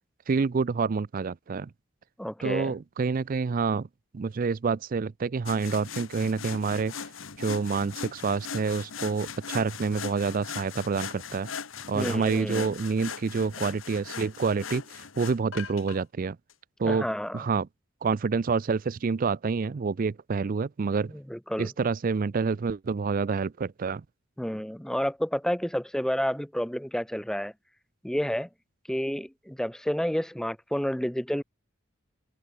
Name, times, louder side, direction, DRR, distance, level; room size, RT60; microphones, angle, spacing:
voice 1, 0.3-1.7 2.4-3.9 4.1-6.9 7.4-11.5 11.9-16.4 16.8-17.1 17.3-17.7 18.0-21.1 21.6-24.0, right 5 dB, 40° right, 0.4 m, -28 dB
voice 2, 2.2-2.7 11.9-12.7 16.8-17.5 21.1-21.7 24.4-27.5 28.0-28.5 28.9-31.4, equal, 5° left, 0.8 m, -30 dB
sound 1, 5.5-16.0 16.5-16.6, left 6 dB, 75° left, 1.4 m, -39 dB
head